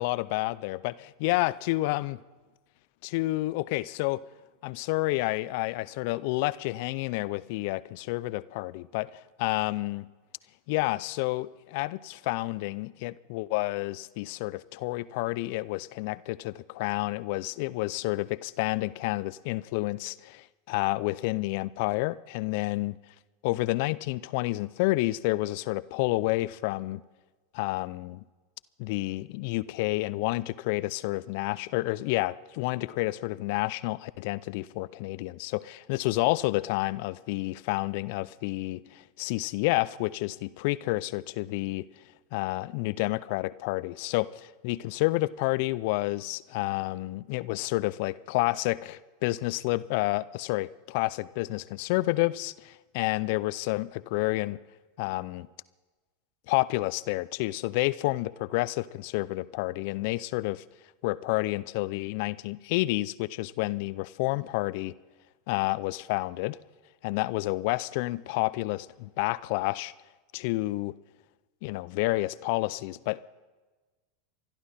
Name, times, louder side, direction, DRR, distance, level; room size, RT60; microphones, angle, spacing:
voice 1, 0.0-2.2 3.0-4.2 4.6-10.1 10.7-23.0 23.4-27.0 27.5-28.2 28.8-41.9 42.3-54.6 55.0-55.5 56.5-60.6 61.0-64.9 65.5-66.6 67.0-69.9 70.3-70.9 71.6-73.2, left 20 dB, 60° left, 0.5 m, -29 dB
26.5 x 11.5 x 4.3 m
hypercardioid pair, 90°, 0 cm